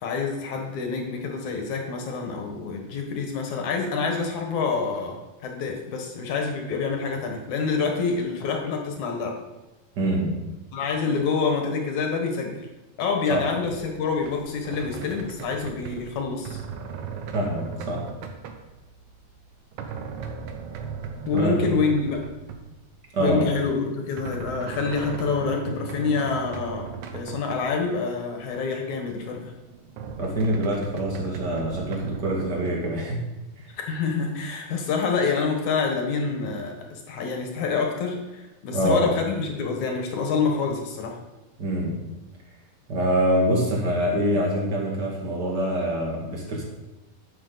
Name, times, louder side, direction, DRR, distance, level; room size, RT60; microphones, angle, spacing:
voice 1, 0.0-9.3 10.7-12.7 13.0-16.6 21.3-22.2 23.2-29.5 33.8-41.1, left 4 dB, 60° left, 2 dB, 2.3 m, -27 dB
voice 2, 9.9-10.5 13.3-13.4 17.3-18.1 21.3-21.6 23.1-23.6 30.2-33.2 33.6-33.7 38.7-39.1 41.6-42.1 42.9-46.6, equal, 35° right, -2 dB, 1.8 m, -25 dB
sound 1, 13.7-22.7 23.4-27.8 28.1-28.2 28.4-28.5 29.3-32.7, right 6 dB, 70° right, 1.9 m, -38 dB
12.0 x 7.6 x 4.0 m, 1.1 s
omnidirectional pair, 4.3 m